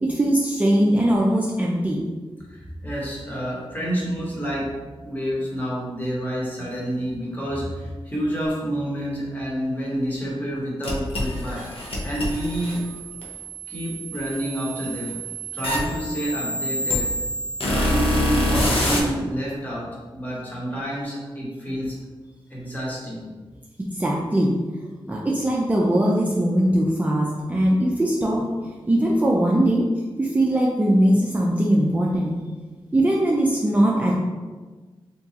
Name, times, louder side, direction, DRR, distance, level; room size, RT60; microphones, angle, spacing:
voice 1, 0.0-2.1 23.9-24.5 25.1-28.5 28.9-29.9 30.2-32.3 32.9-34.2, right 1 dB, 15° right, -3 dB, 0.4 m, -20 dB
voice 2, 2.5-4.7 5.0-11.6 12.0-12.8 13.7-15.2 15.5-17.1 17.7-22.0 22.5-23.3, equal, 20° left, -5 dB, 1.0 m, -28 dB
sound 1, 10.8-19.0, equal, 80° left, 0.7 m, -26 dB
3.5 x 2.9 x 2.7 m, 1.3 s
wide cardioid pair, 120°, 10 cm